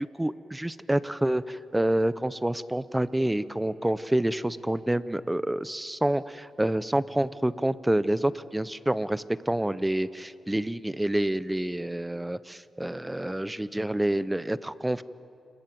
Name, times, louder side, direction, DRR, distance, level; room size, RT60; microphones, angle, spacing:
voice 1, 0.0-15.0, right 1 dB, 10° right, 16 dB, 0.8 m, -28 dB
27.5 x 21.0 x 7.7 m, 2.5 s
cardioid pair, 80°, 0 cm